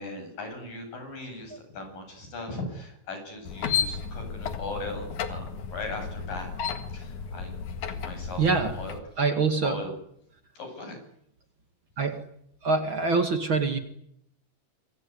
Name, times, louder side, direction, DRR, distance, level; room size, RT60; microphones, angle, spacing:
voice 1, 0.0-6.5 6.9-7.5 7.9-9.0 9.6-9.9 10.6-11.0, left 3 dB, 80° left, 5 dB, 9.8 m, -38 dB
sound 1, 3.5-9.0, left 6 dB, 65° left, 3.2 m, -33 dB
voice 2, 8.4-8.8 9.2-9.8 12.0-12.2 12.6-13.8, right 4 dB, 40° right, 8 dB, 2.3 m, -24 dB
26.0 x 23.5 x 9.8 m, 0.73 s
omnidirectional pair, 3.8 m